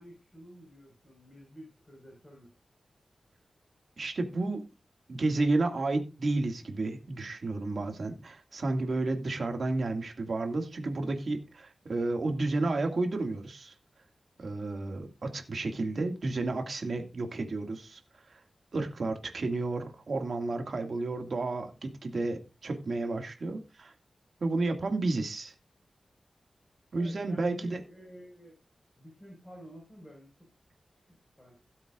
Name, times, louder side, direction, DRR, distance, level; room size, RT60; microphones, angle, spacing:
voice 1, 0.0-2.5 27.0-28.5 29.0-30.3 31.0-31.5, equal, 15° left, 4.9 m, -50 dB
voice 2, 4.0-4.6 5.1-13.7 14.4-18.0 18.3-18.4 18.7-23.9 24.4-25.5 26.9-27.8, right 2 dB, 60° right, 2.1 m, -31 dB
17.0 x 7.7 x 2.5 m
wide cardioid pair, 115°, 0 cm